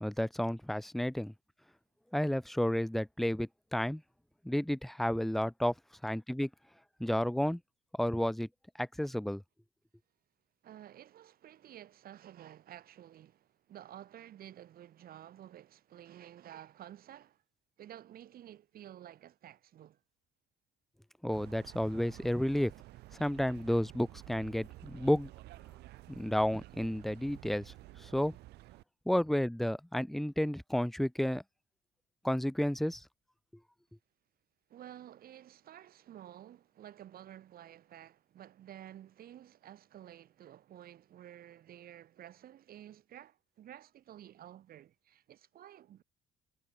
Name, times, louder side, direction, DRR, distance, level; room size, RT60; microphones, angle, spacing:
voice 1, 0.0-1.3 2.1-4.0 4.4-5.7 6.0-6.5 7.0-7.6 8.0-8.5 8.8-9.4 21.2-22.7 23.2-25.3 26.1-27.7 28.0-28.4 29.1-31.4 32.2-33.0, left 1 dB, ahead, 0.3 m, -31 dB
voice 2, 10.6-17.4 17.8-20.0 34.7-46.0, right 11 dB, 60° right, 6.2 m, -52 dB
sound 1, 21.3-28.8, right 17 dB, 80° right, 1.7 m, -52 dB
cardioid pair, 110°, 17 cm